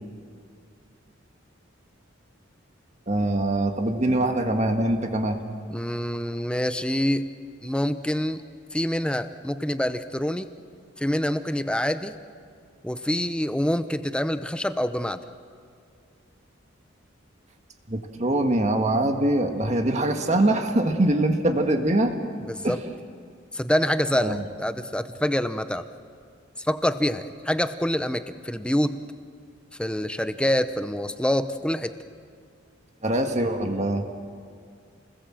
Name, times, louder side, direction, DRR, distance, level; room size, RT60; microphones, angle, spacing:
voice 1, 3.1-5.4 17.9-22.2 22.6-22.8 24.2-24.4 33.0-34.0, right 1 dB, 35° right, 4 dB, 1.7 m, -23 dB
voice 2, 5.7-7.3 7.6-8.4 8.7-10.5 11.0-12.2 12.8-15.2 22.4-22.8 23.5-25.8 26.6-29.0 29.8-31.9, equal, 5° left, 10 dB, 0.7 m, -26 dB
29.0 x 20.0 x 7.6 m, 2.2 s
head